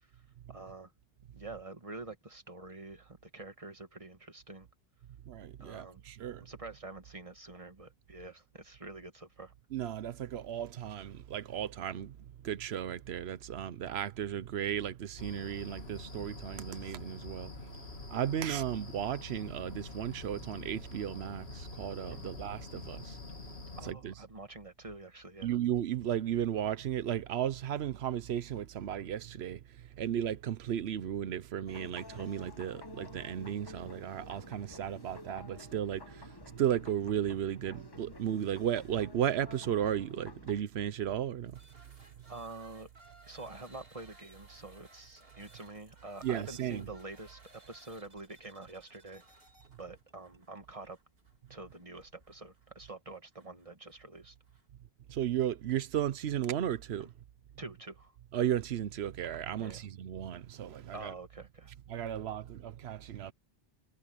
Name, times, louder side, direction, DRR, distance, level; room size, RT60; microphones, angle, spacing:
voice 1, 0.5-0.9 1.3-4.7 5.6-6.0 6.4-9.5 22.1-22.4 23.8-25.6 42.3-42.9 43.3-49.5 49.8-51.0 51.5-54.3 57.0-57.1 57.6-58.1 59.6-59.8 60.9-61.7, right 2 dB, 35° right, 2.2 m, -47 dB
voice 2, 5.3-6.4 9.7-12.1 12.4-17.5 18.1-23.2 23.8-24.1 25.4-29.6 30.0-36.3 36.5-41.5 46.2-46.9 55.1-57.1 58.3-61.1 61.9-63.3, right 10 dB, 90° right, 1.0 m, -34 dB
sound 1, 15.2-23.9, left 3 dB, 90° left, 2.5 m, -46 dB
sound 2, 31.7-40.6, left 3 dB, 25° left, 1.2 m, -51 dB
sound 3, 41.5-54.7, right 2 dB, 70° right, 3.6 m, -61 dB
omnidirectional pair, 1.0 m